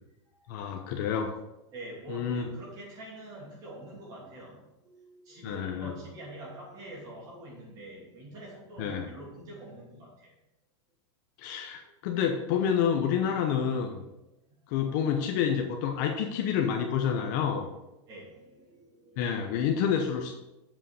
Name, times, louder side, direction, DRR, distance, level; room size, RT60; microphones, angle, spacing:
voice 1, 0.5-1.3 2.1-2.5 5.4-5.9 8.8-9.1 11.4-14.0 14.7-17.7 19.2-20.4, left 7 dB, 40° left, 3 dB, 0.8 m, -28 dB
voice 2, 1.7-10.3 11.8-11.9 14.0-14.2 18.1-19.8, right 1 dB, 25° right, -4 dB, 2.7 m, -46 dB
7.7 x 5.3 x 4.9 m, 0.93 s
supercardioid pair, 175°, 15 cm